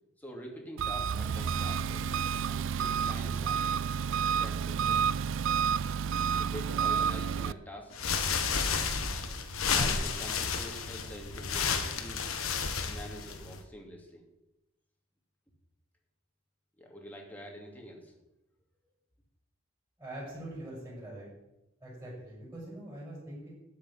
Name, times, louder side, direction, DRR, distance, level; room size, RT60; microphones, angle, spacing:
voice 1, 0.2-2.0 2.4-3.7 4.4-5.0 6.3-7.9 9.7-12.3 12.8-14.2 16.8-18.1, equal, 10° left, 0 dB, 2.7 m, -46 dB
Engine, 0.8-7.5, right 7 dB, 60° right, 0.4 m, -30 dB
sound 1, 7.9-13.6, left 5 dB, 85° left, 1.5 m, -31 dB
voice 2, 20.0-21.3 21.8-23.5, right 1 dB, 15° right, -7 dB, 6.7 m, -43 dB
12.5 x 6.8 x 10.0 m, 0.92 s
head